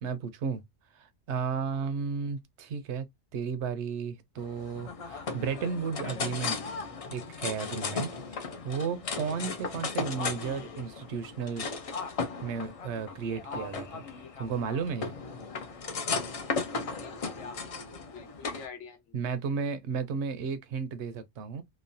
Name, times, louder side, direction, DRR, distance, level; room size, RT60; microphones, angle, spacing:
voice 1, 0.0-0.6 0.9-3.1 3.3-6.6 7.1-11.7 12.4-14.0 14.4-15.2 19.1-21.6, right 6 dB, 75° right, 0.9 m, -34 dB
sound 1, 4.4-18.7, left 4 dB, 55° left, 0.4 m, -36 dB
voice 2, 16.8-19.2, left 6 dB, 90° left, 1.1 m, -49 dB
3.0 x 2.0 x 2.5 m
omnidirectional pair, 1.2 m